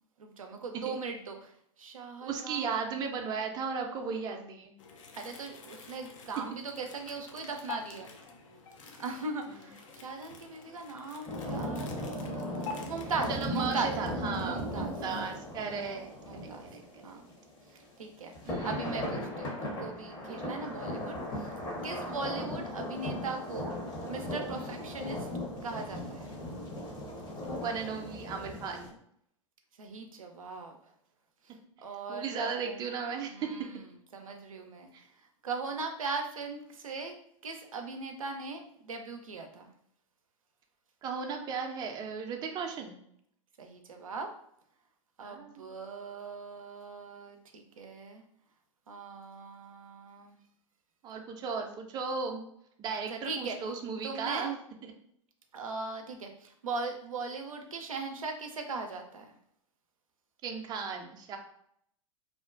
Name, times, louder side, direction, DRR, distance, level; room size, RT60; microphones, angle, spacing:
voice 1, 0.2-1.5 1.8-3.0 5.2-8.1 9.0-13.9 14.4-14.9 16.2-16.7 17.0-17.3 18.0-18.3 18.6-21.5 21.8-23.7 24.0-25.3 25.6-26.3 29.8-30.7 31.8-32.8 33.3-33.9 34.1-34.9 35.4-37.1 37.4-39.7 43.6-44.3 45.2-48.2 48.9-50.4 52.9-53.6 54.0-54.6 55.5-59.3, right 4 dB, 90° right, 4 dB, 0.4 m, -39 dB
voice 2, 2.2-4.8 12.8-12.9 13.3-16.1 16.4-17.0 18.4-18.7 20.3-20.5 22.0-22.2 24.6-24.7 27.5-28.9 32.1-33.7 41.0-43.0 45.2-45.8 51.0-52.4 52.8-54.6 60.4-61.4, right 5 dB, 25° right, 2 dB, 0.4 m, -36 dB
sound 1, 4.8-15.4, left 4 dB, 70° left, 0.5 m, -48 dB
sound 2, 11.3-17.6 18.3-28.9, left 1 dB, 25° left, 0.7 m, -37 dB
2.4 x 2.1 x 2.3 m, 0.70 s
hypercardioid pair, 100°, 17 cm